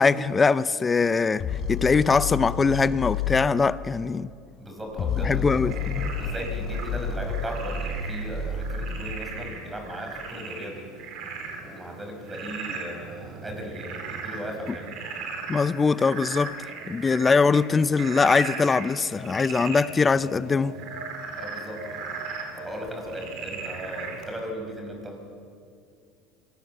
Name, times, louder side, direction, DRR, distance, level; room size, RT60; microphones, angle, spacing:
voice 1, 0.0-4.3 5.2-6.1 15.5-16.5 16.9-20.8, left 4 dB, 20° left, 0.6 m, -22 dB
sound 1, 1.4-3.4 4.9-9.2, left 5 dB, 40° left, 3.8 m, -30 dB
voice 2, 4.6-5.9 6.2-10.9 11.6-15.0 21.3-22.0 22.5-25.2, equal, 15° right, 5.5 m, -37 dB
Frog, 5.7-24.4, right 4 dB, 60° right, 4.5 m, -38 dB
26.0 x 18.5 x 7.2 m
supercardioid pair, 105°, 0 cm